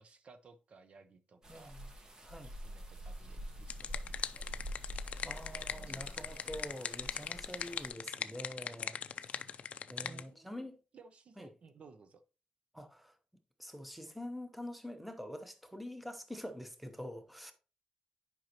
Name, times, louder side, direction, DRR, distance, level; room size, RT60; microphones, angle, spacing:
voice 1, 0.0-1.8 2.6-4.6 5.5-6.5 8.8-8.9 10.0-10.7 10.9-12.2, right 4 dB, 50° right, 0.6 m, -59 dB
sound 1, 1.4-7.9, equal, 30° right, 1.1 m, -46 dB
voice 2, 1.5-1.9 2.2-2.5 5.2-9.6 9.9-10.8 11.4-11.5 12.7-13.2 13.6-17.5, left 1 dB, ahead, 0.8 m, -46 dB
sound 2, 3.4-10.2, left 7 dB, 60° left, 0.4 m, -41 dB
10.5 x 5.3 x 2.9 m
wide cardioid pair, 165°, 3 cm